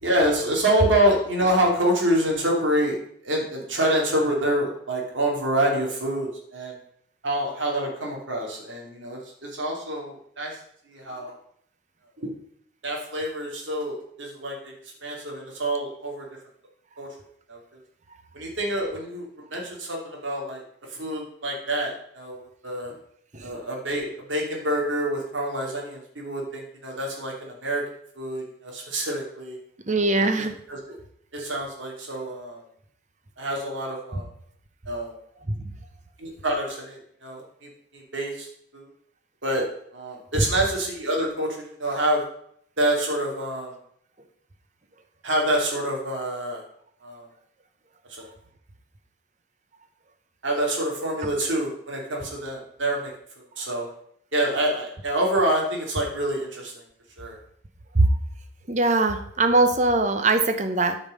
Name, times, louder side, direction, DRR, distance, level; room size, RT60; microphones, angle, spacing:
voice 1, 0.0-2.9 3.2-6.8 7.2-10.6 10.9-11.3 12.2-12.3 12.8-14.7 15.0-16.2 17.0-17.1 17.5-17.6 18.3-20.6 20.9-22.4 22.6-22.9 23.4-27.8 28.1-29.6 30.1-30.3 30.7-31.0 31.3-32.6 33.4-34.3 34.9-35.1 36.2-37.4 37.9-38.5 38.7-38.8 39.4-39.7 39.9-42.2 42.8-43.7 45.2-46.6 47.0-47.3 48.1-48.3 50.4-53.1 53.6-53.9 54.3-56.7 57.2-57.4, right 1 dB, 70° right, -1 dB, 2.8 m, -26 dB
voice 2, 29.9-30.5 35.5-35.6 40.4-40.5 57.9-58.1 58.7-61.0, right 2 dB, 35° right, 8 dB, 0.9 m, -21 dB
9.0 x 5.4 x 6.5 m, 0.67 s
head